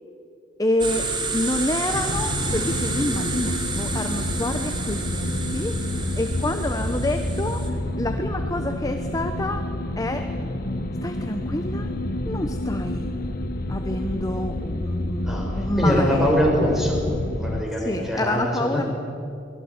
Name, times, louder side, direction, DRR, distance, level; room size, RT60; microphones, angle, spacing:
voice 1, 0.6-1.1 1.3-5.7 6.2-9.7 10.0-10.3 11.0-11.9 12.3-13.1 13.7-16.3 17.8-18.8, left 1 dB, 20° left, 6 dB, 1.1 m, -28 dB
sound 1, 0.8-7.7, right 3 dB, 25° right, 3.1 m, -30 dB
sound 2, 1.9-17.6, left 1 dB, 50° left, 1.2 m, -29 dB
voice 2, 15.2-17.0 17.4-18.9, equal, ahead, -2 dB, 6.6 m, -23 dB
24.0 x 20.0 x 9.7 m, 2.5 s
head